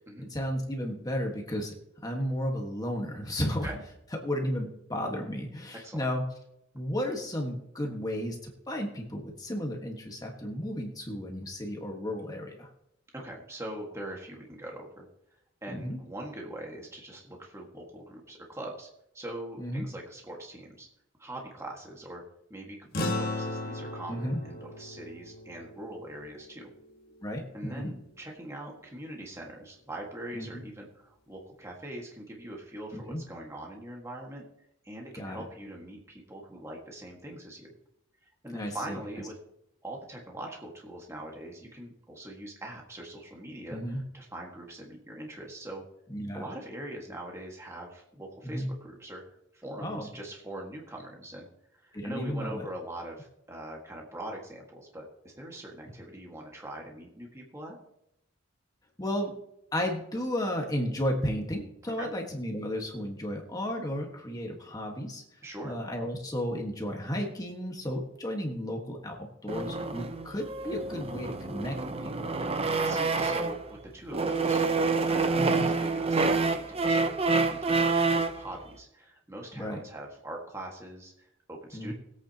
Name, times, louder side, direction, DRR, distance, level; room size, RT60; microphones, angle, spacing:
voice 1, 0.3-1.7 2.0-3.7 4.2-6.2 6.7-12.7 15.7-16.0 19.6-19.8 24.1-24.4 27.2-27.9 30.3-30.6 32.9-33.2 35.1-35.4 38.5-39.0 43.7-44.0 46.1-46.5 48.4-48.7 49.8-50.1 51.9-52.7 59.0-59.3 59.7-72.3 75.4-75.7 79.5-79.8 81.7-81.9, equal, 20° left, 1 dB, 1.5 m, -33 dB
voice 2, 13.1-15.1 15.6-18.9 19.1-20.9 21.2-22.2 22.5-26.7 27.5-34.4 34.8-37.7 38.4-39.4 39.8-45.8 46.3-49.2 49.5-57.8 62.0-62.1 65.4-65.8 72.8-81.9, right 1 dB, 15° right, -1 dB, 1.7 m, -42 dB
sound 1, 22.9-27.6, left 2 dB, 50° left, 1.4 m, -36 dB
sound 2, 69.5-73.7 74.1-78.4, right 3 dB, 30° right, 0.7 m, -27 dB
20.5 x 8.6 x 2.9 m, 0.79 s
head